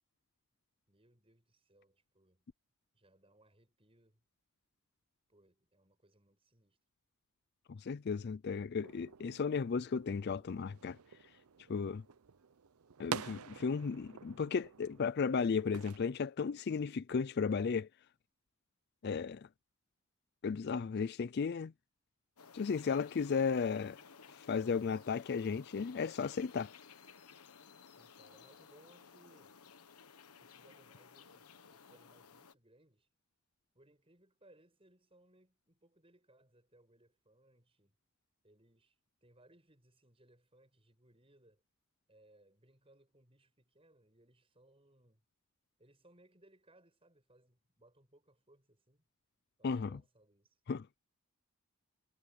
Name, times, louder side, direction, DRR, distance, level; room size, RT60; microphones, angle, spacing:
voice 1, 0.9-2.5 2.9-4.2 5.3-6.8 27.9-29.6 30.4-33.1 33.7-38.0 38.4-41.6 42.1-45.2 45.8-49.1 49.6-50.6, right 1 dB, 25° right, 7.7 m, -67 dB
voice 2, 7.7-11.0 11.7-12.0 13.0-17.9 19.0-19.5 20.4-21.7 22.5-24.0 24.3-26.7 49.6-50.0 50.7-50.9, left 5 dB, 45° left, 0.4 m, -35 dB
sound 1, 8.8-16.0, right 7 dB, 85° right, 0.7 m, -48 dB
sound 2, 22.4-32.5, left 6 dB, 85° left, 1.3 m, -57 dB
head